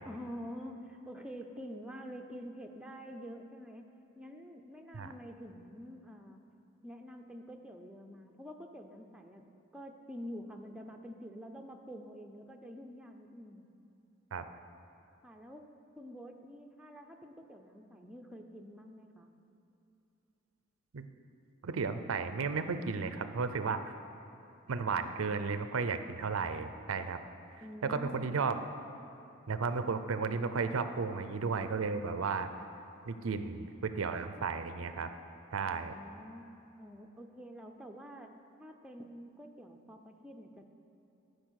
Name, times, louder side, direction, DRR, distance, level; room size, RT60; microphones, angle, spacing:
voice 1, 0.0-3.8 4.2-6.4 6.8-9.4 9.7-13.7 15.2-15.6 16.0-19.3 27.6-28.3 35.7-36.5 36.8-38.3 38.6-40.7, equal, 5° right, 3 dB, 0.5 m, -47 dB
voice 2, 21.6-23.8 24.7-27.2 27.8-28.6 29.5-32.5 33.1-35.1 35.5-35.9, right 5 dB, 80° right, 10 dB, 0.5 m, -34 dB
12.5 x 5.2 x 6.4 m, 3.0 s
head